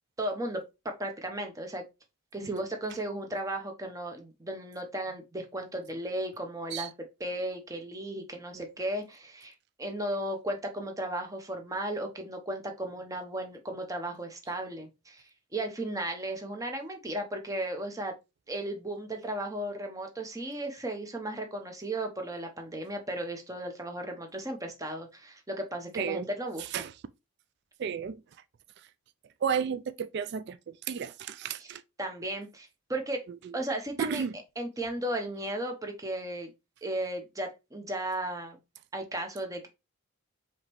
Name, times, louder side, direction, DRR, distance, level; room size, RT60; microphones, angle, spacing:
voice 1, 0.2-1.8 2.3-6.9 7.2-9.5 9.8-15.2 15.5-18.1 18.5-26.8 32.0-33.2 33.5-34.2 34.6-36.5 36.8-38.6 38.9-39.7, right 1 dB, 15° right, 0.8 m, -35 dB
voice 2, 26.0-26.3 26.7-26.9 27.8-28.2 29.4-31.8 33.3-33.6 34.0-34.4, right 7 dB, 50° right, 0.3 m, -33 dB
5.0 x 3.0 x 3.0 m
head